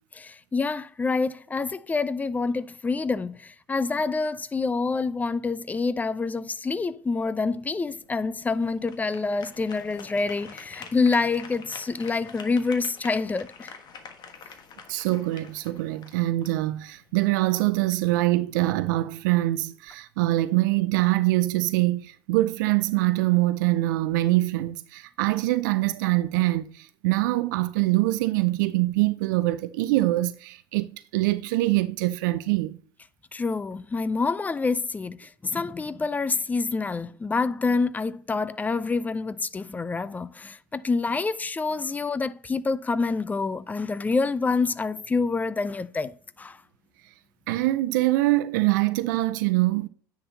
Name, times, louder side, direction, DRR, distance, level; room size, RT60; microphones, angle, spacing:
voice 1, 0.2-13.7 33.3-46.6, left 4 dB, 15° left, 0.5 m, -27 dB
sound 1, 7.2-17.3, left 6 dB, 40° left, 1.4 m, -47 dB
voice 2, 14.9-32.8 47.5-49.9, right 18 dB, 60° right, 0.5 m, -24 dB
9.9 x 5.9 x 2.8 m
hypercardioid pair, 80°, 11 cm